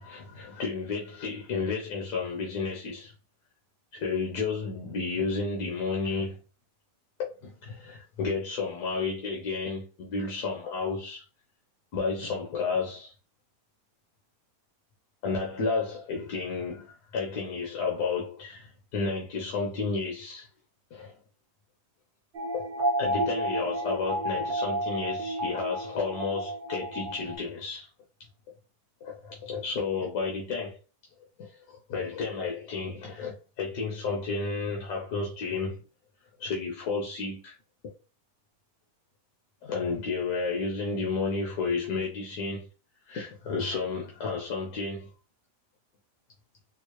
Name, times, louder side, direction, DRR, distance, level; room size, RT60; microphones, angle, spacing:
voice 1, 0.0-3.1 3.9-6.4 7.4-11.2 11.9-13.1 15.2-20.5 20.9-21.1 22.5-22.6 23.0-27.9 29.0-30.8 31.4-35.8 36.4-37.6 39.6-42.7 43.1-45.1, left 4 dB, 70° left, 1.4 m, -32 dB
sound 1, 22.3-27.4, right 1 dB, 60° right, 0.6 m, -31 dB
4.5 x 2.0 x 3.0 m
omnidirectional pair, 1.8 m